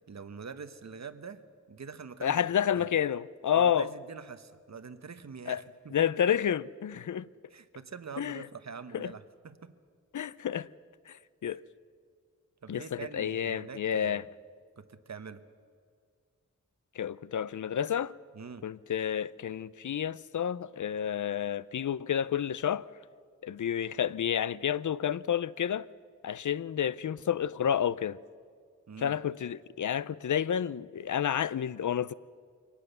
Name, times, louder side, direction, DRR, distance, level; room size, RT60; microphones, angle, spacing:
voice 1, 0.1-1.4 1.7-2.4 2.7-3.0 3.5-6.0 7.5-9.7 12.6-14.3 14.8-15.4 18.3-18.7 28.9-29.2, right 5 dB, 60° right, 1.1 m, -44 dB
voice 2, 2.2-3.9 5.5-5.6 5.9-7.3 8.2-8.4 8.9-9.1 10.1-10.7 11.1-11.6 12.7-14.2 17.0-18.1 18.6-22.9 23.4-25.9 26.2-28.2 29.0-32.1, left 9 dB, 75° left, 0.5 m, -30 dB
24.0 x 18.5 x 6.8 m
wide cardioid pair, 95°, 31 cm